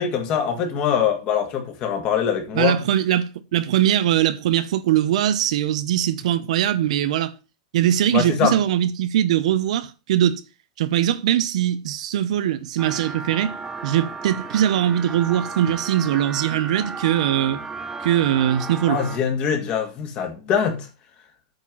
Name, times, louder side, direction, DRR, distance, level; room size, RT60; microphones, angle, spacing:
voice 1, 0.0-2.8 8.1-8.6 18.9-20.9, left 7 dB, 30° left, 2.1 m, -23 dB
voice 2, 2.5-7.3 7.7-10.4 10.8-13.6 13.8-17.6 18.0-19.0, right 11 dB, 65° right, 0.9 m, -21 dB
sound 1, 12.8-19.2, right 4 dB, 10° right, 0.5 m, -34 dB
8.9 x 4.5 x 7.4 m
supercardioid pair, 165°, 4 cm